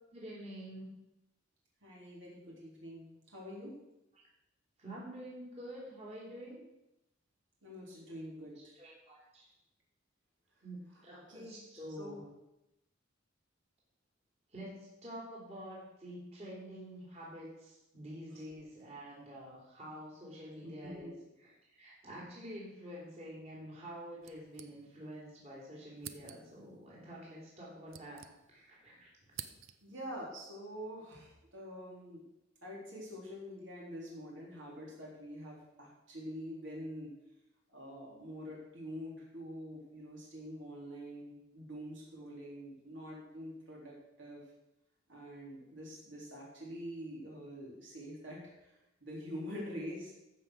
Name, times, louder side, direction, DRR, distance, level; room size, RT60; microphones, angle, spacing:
voice 1, 0.1-0.9 4.1-4.2 4.8-6.6 8.8-9.5 10.6-12.2 14.5-29.1, equal, 35° right, -5 dB, 3.6 m, -48 dB
voice 2, 1.8-3.8 7.6-8.6 11.3-11.6 12.0-12.2 20.6-21.1 29.3-29.5 29.8-32.2 32.6-37.1 37.7-44.4 45.1-48.8 49.0-50.1, equal, 65° right, -3 dB, 3.9 m, -46 dB
sound 1, 24.2-25.2 25.5-25.6 26.0-26.7 27.5-28.8 29.0-30.0, right 10 dB, 85° right, 0.7 m, -50 dB
14.0 x 5.7 x 6.4 m, 0.90 s
head